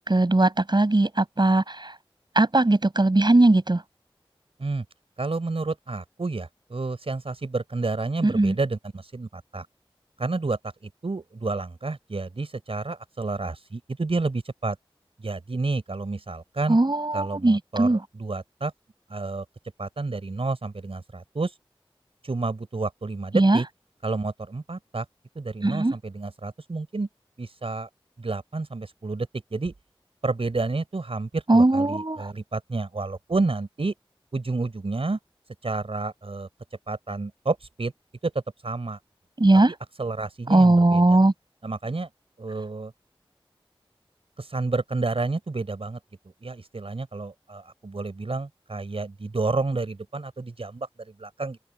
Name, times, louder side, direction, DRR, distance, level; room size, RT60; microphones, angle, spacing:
voice 1, 0.0-1.9 2.3-3.8 8.2-8.6 16.7-18.0 23.3-23.6 25.6-25.9 31.5-32.3 39.4-39.7 40.5-41.3, right 2 dB, 50° right, 8.0 m, -19 dB
voice 2, 5.2-9.7 10.2-14.8 15.2-16.8 17.1-18.7 19.1-19.4 19.8-21.5 22.2-23.7 24.0-25.0 25.3-27.1 27.4-27.9 28.2-29.7 30.2-33.9 34.3-35.2 35.6-36.5 36.9-37.9 38.2-38.3 38.6-39.0 40.0-41.2 41.6-42.1 42.4-42.9 44.4-46.0 46.4-51.6, right 3 dB, 85° right, 4.8 m, -30 dB
open air
wide cardioid pair, 45°, 10 cm